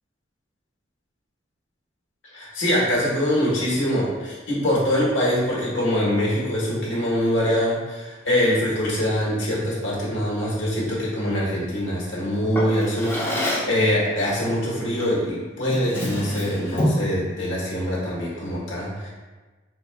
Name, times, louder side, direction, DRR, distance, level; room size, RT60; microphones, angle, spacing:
voice 1, 2.3-19.1, equal, 75° left, -6 dB, 1.4 m, -24 dB
Drawer open or close, 12.5-13.8 15.0-15.2 15.6-17.1, equal, 10° left, 0.7 m, -27 dB
4.5 x 4.2 x 2.3 m, 1.3 s
head